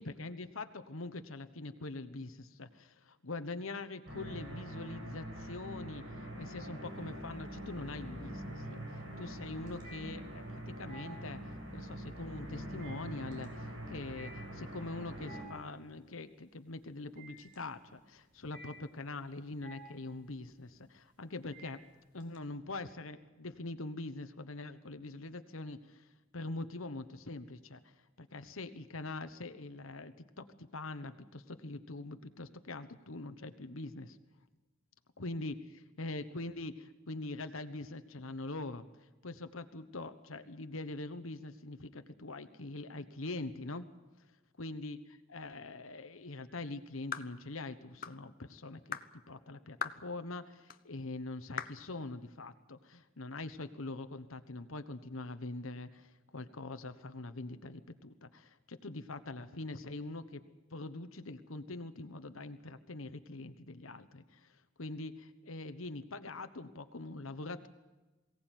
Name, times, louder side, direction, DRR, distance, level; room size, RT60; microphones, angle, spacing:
voice 1, 0.0-21.8 22.1-34.2 35.2-43.9 44.6-49.0 49.3-60.4 60.7-67.7, left 2 dB, 80° left, 10 dB, 1.3 m, -43 dB
sound 1, 4.1-15.5, equal, 65° right, 7.6 m, -44 dB
sound 2, 6.9-7.5 7.9-22.4, right 2 dB, 40° right, 4.5 m, -55 dB
sound 3, 47.1-47.3 48.0-48.2 48.9-49.1 49.8-50.0 50.7-50.8 51.6-51.8, left 7 dB, 45° left, 1.0 m, -39 dB
22.5 x 17.5 x 9.2 m, 1.1 s
head